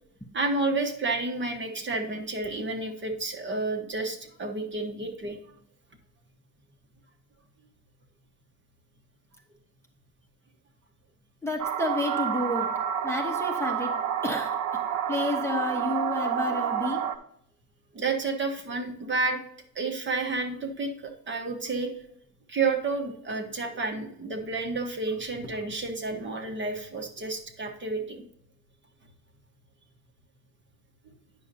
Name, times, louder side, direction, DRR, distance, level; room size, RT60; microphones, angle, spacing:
voice 1, 0.3-5.4 17.9-19.4 19.7-21.9 22.5-28.2, right 3 dB, 40° right, 4 dB, 1.2 m, -30 dB
voice 2, 11.4-12.7 13.0-13.9 14.2-14.5 15.1-17.0, left 2 dB, 10° left, 1 dB, 1.0 m, -30 dB
sound 1, 11.6-17.2, right 9 dB, 75° right, 0.8 m, -29 dB
9.6 x 6.4 x 2.7 m, 0.71 s
cardioid pair, 140°, 30 cm